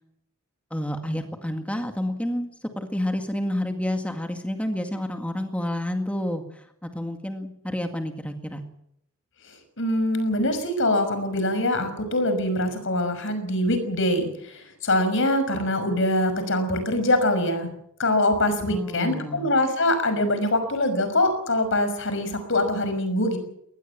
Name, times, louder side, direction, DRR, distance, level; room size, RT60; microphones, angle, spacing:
voice 1, 0.7-8.6 18.7-19.4, left 1 dB, 5° left, 5 dB, 1.9 m, -29 dB
voice 2, 9.8-17.7 18.0-23.4, left 1 dB, 60° left, 9 dB, 5.9 m, -23 dB
23.0 x 19.0 x 7.4 m, 0.74 s
head